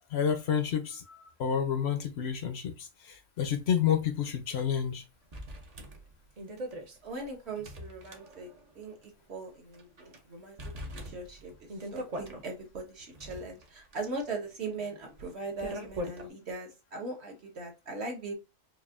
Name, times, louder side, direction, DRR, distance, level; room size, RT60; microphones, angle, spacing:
voice 1, 0.1-5.0, left 8 dB, 65° left, 0.8 m, -30 dB
sound 1, 4.2-4.3 4.6-4.7 5.3-8.7 9.0-9.1 9.7-10.2 10.6-12.4 13.0-16.3, equal, 40° right, 0.6 m, -42 dB
voice 2, 7.0-8.5 8.7-10.6 10.8-18.3, right 3 dB, 60° right, 1.3 m, -40 dB
4.7 x 2.5 x 2.4 m
omnidirectional pair, 1.3 m